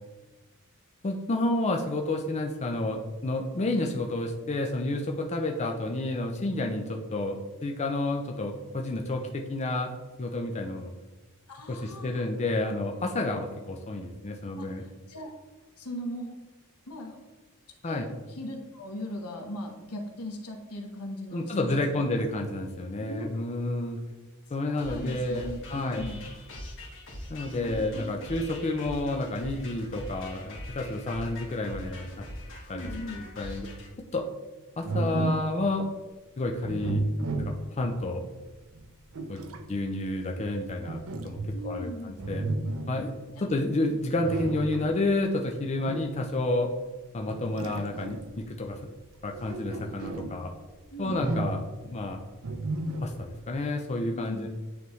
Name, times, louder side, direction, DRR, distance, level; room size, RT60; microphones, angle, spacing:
voice 1, 1.0-9.9 10.2-10.9 11.7-14.8 17.8-18.1 21.3-24.0 24.5-26.0 27.3-32.1 32.7-33.7 34.1-34.2 34.8-35.9 36.4-37.0 37.7-38.2 39.3-39.4 39.7-41.0 41.2-41.4 41.6-42.4 42.9-46.7 47.1-48.8 49.2-50.5 51.0-51.6 51.8-52.2 53.0-54.5, left 2 dB, 30° left, 2 dB, 0.5 m, -30 dB
voice 2, 11.5-12.2 14.6-14.7 15.1-15.3 15.8-16.4 16.9-17.2 17.8-22.1 23.1-23.3 24.6-26.2 27.6-28.3 32.7-33.2 41.5-42.2 43.3-43.6 47.4-47.5 50.9-51.2 54.1-54.4, left 1 dB, 80° left, 1 dB, 1.2 m, -39 dB
sound 1, 24.8-33.9, left 1 dB, 60° left, 1.7 m, -42 dB
sound 2, 34.8-35.6 36.6-38.0 38.7-39.7 40.8-41.8 42.2-43.0 44.2-45.0 45.8-46.2 47.3-48.4 49.2-50.4 51.0-51.8 52.4-53.3, right 2 dB, 65° right, 0.6 m, -32 dB
9.3 x 3.4 x 3.1 m, 1.2 s
head